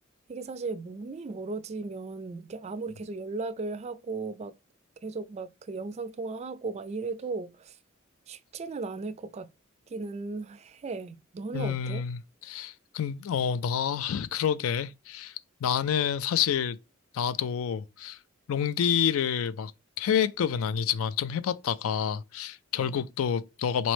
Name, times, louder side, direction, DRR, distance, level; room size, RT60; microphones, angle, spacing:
voice 1, 0.3-4.5 5.0-7.8 8.3-9.5 9.9-12.0 22.8-23.0, right 3 dB, 30° right, 0.3 m, -36 dB
voice 2, 11.5-15.4 15.6-16.8 17.1-18.2 18.5-19.7 20.0-23.9, left 8 dB, 85° left, 0.3 m, -28 dB
4.1 x 3.1 x 3.1 m
head